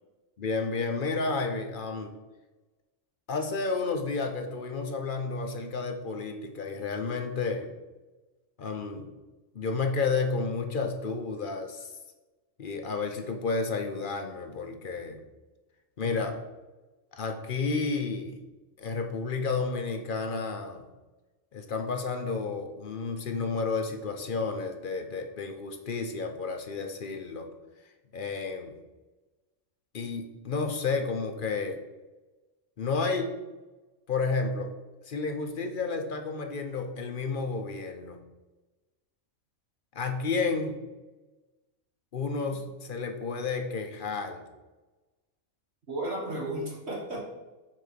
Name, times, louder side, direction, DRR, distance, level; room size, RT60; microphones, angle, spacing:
voice 1, 0.4-2.1 3.3-7.7 8.6-9.1 9.5-11.9 12.6-15.2 16.0-16.4 17.1-18.4 18.8-20.8 21.5-27.5 28.1-28.7 29.9-31.8 32.8-33.3 34.1-34.7 35.1-38.2 39.9-40.8 42.1-44.4, left 4 dB, 50° left, 5 dB, 0.7 m, -31 dB
voice 2, 45.9-47.2, right 1 dB, 50° right, -2 dB, 1.7 m, -33 dB
6.4 x 3.8 x 5.8 m, 1.1 s
omnidirectional pair, 1.4 m